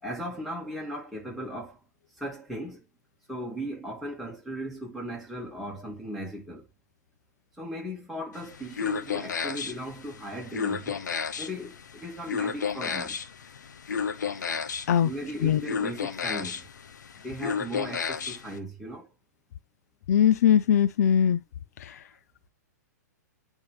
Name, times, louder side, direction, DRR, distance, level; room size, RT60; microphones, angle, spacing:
voice 1, 0.0-1.8 2.2-2.9 3.3-6.7 7.6-11.0 11.4-13.2 15.0-16.7 17.2-19.1, equal, ahead, 2.6 m, -37 dB
sound 1, 8.3-18.6, left 6 dB, 80° left, 0.9 m, -33 dB
voice 2, 20.1-21.4 21.8-22.0, left 9 dB, 60° left, 0.6 m, -21 dB
9.3 x 3.6 x 3.3 m
hypercardioid pair, 125°, 10 cm